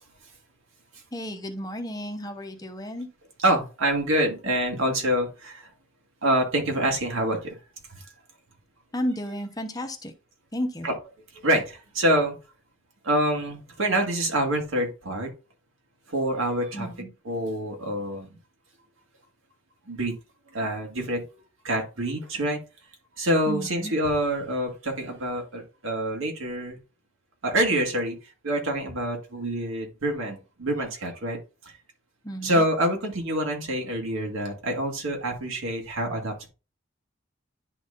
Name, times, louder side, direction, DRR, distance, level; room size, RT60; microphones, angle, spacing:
voice 1, 1.1-3.1 8.9-10.1 10.5-10.9 16.7-17.1 23.5-23.9 28.9-29.0 32.2-32.7, equal, 20° left, 5 dB, 0.8 m, -32 dB
voice 2, 3.4-5.7 6.2-7.6 7.9-8.0 10.8-10.9 11.4-12.4 13.0-15.3 16.1-16.9 17.3-18.4 19.9-20.1 20.5-21.2 21.6-22.6 23.2-26.8 27.4-28.2 28.4-31.4 31.6-31.7 32.4-36.5, right 1 dB, 85° right, 2 dB, 2.0 m, -26 dB
10.5 x 4.0 x 2.5 m, 0.32 s
head